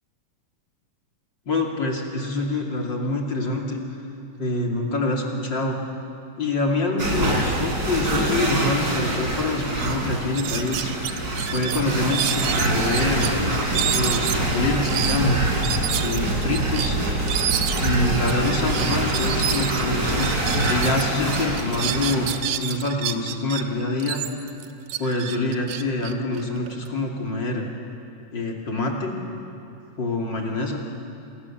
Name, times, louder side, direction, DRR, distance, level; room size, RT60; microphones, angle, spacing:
voice 1, 1.5-3.8 4.4-5.8 6.4-10.9 11.5-13.3 13.9-15.4 16.0-17.0 17.8-20.3 20.7-22.3 22.6-24.2 25.0-27.7 28.3-29.1 30.0-30.8, left 2 dB, 35° left, 0 dB, 3.1 m, -26 dB
sound 1, 7.0-22.3, right 2 dB, 25° right, 3.9 m, -25 dB
sound 2, 9.4-9.5 9.8-10.0 10.3-13.3 13.7-21.0 21.3-23.6 24.0-26.9, right 10 dB, 70° right, 1.9 m, -29 dB
29.0 x 26.5 x 7.3 m, 2.7 s
omnidirectional pair, 3.9 m